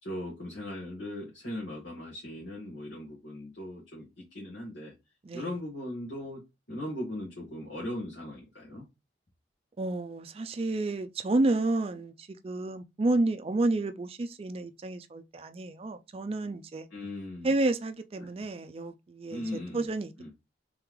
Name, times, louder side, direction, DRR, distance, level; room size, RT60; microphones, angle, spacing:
voice 1, 0.0-4.9 5.3-6.4 6.7-8.8 16.9-17.5 18.2-18.3 19.3-19.9 20.2-20.3, left 1 dB, 80° left, 1.6 m, -38 dB
voice 2, 9.8-12.1 12.4-16.9 17.4-20.1, right 2 dB, 30° right, 0.3 m, -30 dB
3.7 x 3.4 x 3.1 m
head